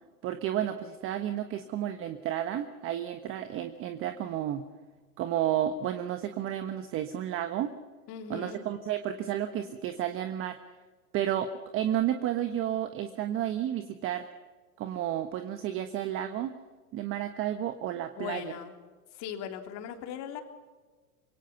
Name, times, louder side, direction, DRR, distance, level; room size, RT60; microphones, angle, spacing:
voice 1, 0.2-4.6 5.2-7.7 8.3-10.6 11.1-11.5 11.7-14.3 14.8-16.5 16.9-18.5, right 11 dB, 30° right, 8 dB, 1.3 m, -31 dB
voice 2, 8.1-8.6 18.2-18.7 19.1-20.4, left 9 dB, 35° left, 5 dB, 3.2 m, -39 dB
25.5 x 22.5 x 5.9 m, 1.4 s
hypercardioid pair, 130°, 45 cm